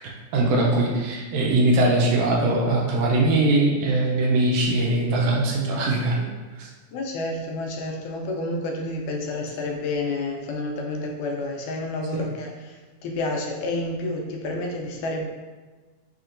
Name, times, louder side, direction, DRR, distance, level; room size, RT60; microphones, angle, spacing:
voice 1, 0.3-6.2 6.6-6.7 12.1-12.2, right 2 dB, 80° right, -1 dB, 1.9 m, -21 dB
voice 2, 6.9-15.3, left 2 dB, 85° left, 0 dB, 2.1 m, -29 dB
5.8 x 2.9 x 2.5 m, 1.3 s
omnidirectional pair, 3.5 m